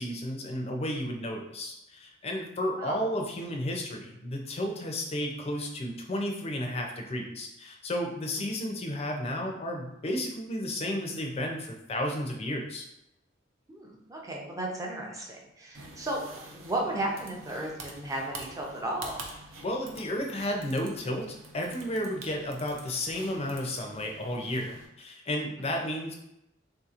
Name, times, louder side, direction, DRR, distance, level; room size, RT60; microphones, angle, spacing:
voice 1, 0.0-12.9 19.6-26.2, left 1 dB, 30° left, 2 dB, 0.5 m, -33 dB
voice 2, 13.7-19.1 25.6-25.7, right 1 dB, 15° right, -2 dB, 0.6 m, -34 dB
sound 1, 15.7-24.9, right 2 dB, 80° right, 0.6 m, -47 dB
3.7 x 2.8 x 2.4 m, 0.85 s
head